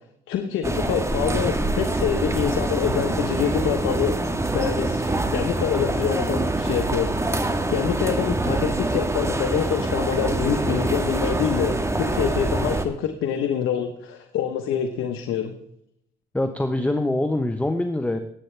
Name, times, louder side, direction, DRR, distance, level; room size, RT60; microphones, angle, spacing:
voice 1, 0.3-4.2 4.5-15.5, left 8 dB, 90° left, 5 dB, 1.1 m, -26 dB
sound 1, 0.6-12.8, right 2 dB, 15° right, 1.4 m, -25 dB
sound 2, 3.4-4.1 5.1-5.7 6.7-7.3 8.4-9.1 10.1-10.8 12.1-12.8, right 5 dB, 40° right, 1.3 m, -35 dB
voice 2, 16.3-18.2, left 1 dB, 5° left, 8 dB, 0.9 m, -24 dB
18.5 x 8.3 x 3.3 m, 0.74 s
cardioid pair, 90°, 20 cm